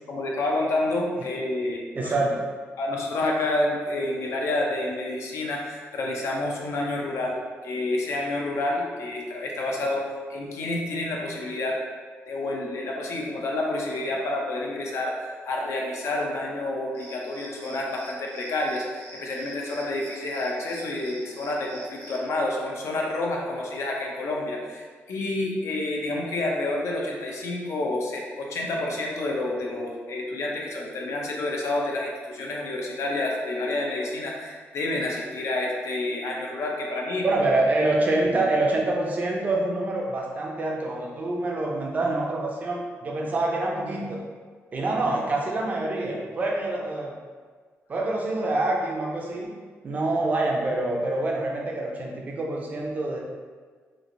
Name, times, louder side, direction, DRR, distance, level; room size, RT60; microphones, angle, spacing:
voice 1, 0.1-2.1 2.8-7.4 7.6-11.8 12.3-37.2, left 2 dB, 70° left, -1 dB, 0.5 m, -29 dB
voice 2, 1.9-2.5 37.2-44.2 44.7-47.1 47.9-49.5 49.8-53.2, right 2 dB, 30° right, -1 dB, 0.4 m, -26 dB
sound 1, 16.9-22.3, right 2 dB, 90° right, 0.6 m, -47 dB
3.1 x 2.4 x 2.5 m, 1.6 s
wide cardioid pair, 155°, 5 cm